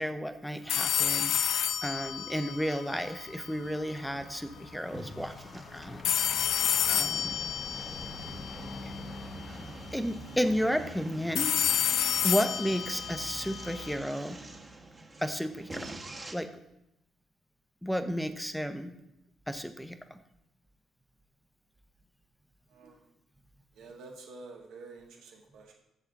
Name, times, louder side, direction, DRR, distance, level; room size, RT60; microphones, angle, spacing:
voice 1, 0.0-1.3 1.8-6.3 6.9-7.5 8.8-8.9 9.9-11.5 12.2-14.4 15.2-15.9 16.3-16.5 17.8-18.9 19.5-20.2, equal, ahead, 9 dB, 0.5 m, -32 dB
sound 1, 0.7-3.7 6.0-9.2 11.4-14.0, left 10 dB, 85° left, 0.3 m, -30 dB
Truck, 2.7-11.9, left 3 dB, 55° left, 0.8 m, -47 dB
sound 2, 3.3-16.3, right 2 dB, 25° right, 0.9 m, -46 dB
voice 2, 22.7-23.1 23.7-25.7, right 3 dB, 80° right, 0 dB, 1.4 m, -49 dB
6.8 x 5.7 x 3.6 m, 0.85 s
cardioid pair, 95°, 0 cm